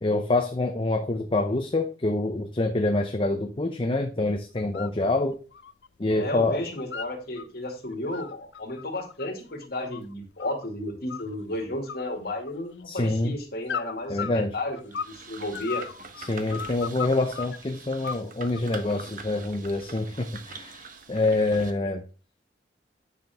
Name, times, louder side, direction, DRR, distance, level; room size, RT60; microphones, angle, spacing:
voice 1, 0.0-5.4 6.0-6.6 12.9-13.4 14.1-14.5 16.2-20.8 21.1-22.0, left 2 dB, 30° left, 5 dB, 0.7 m, -26 dB
sound 1, 4.6-5.0 5.3-6.3 6.5-7.5 7.9-10.7 11.1-11.6 11.9-12.8 13.7-15.2 15.5-17.6 18.0-18.8, left 7 dB, 75° left, 0.5 m, -36 dB
voice 2, 6.1-15.9, left 1 dB, 60° left, 1 dB, 2.3 m, -33 dB
sound 2, 14.9-21.7, right 4 dB, 45° right, 1.0 m, -44 dB
9.2 x 6.1 x 3.5 m, 0.36 s
head